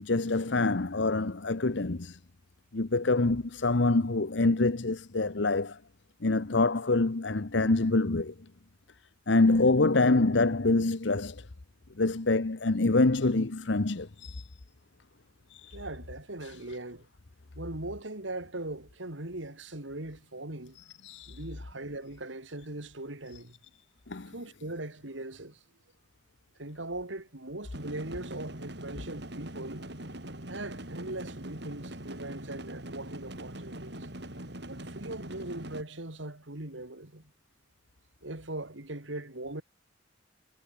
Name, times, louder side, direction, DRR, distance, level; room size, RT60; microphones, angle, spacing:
voice 1, 0.0-2.2 2.7-5.8 6.2-8.3 9.3-11.4 12.0-14.5 15.5-15.8 21.0-21.4 24.1-24.3, left 2 dB, 65° left, 1.0 m, -26 dB
voice 2, 15.7-17.1 17.5-20.8 21.3-23.6 24.3-25.6 26.6-29.9 30.5-34.1 34.7-37.3 38.2-39.6, right 2 dB, 75° right, 3.2 m, -40 dB
sound 1, 27.7-35.8, right 1 dB, 60° right, 7.1 m, -42 dB
head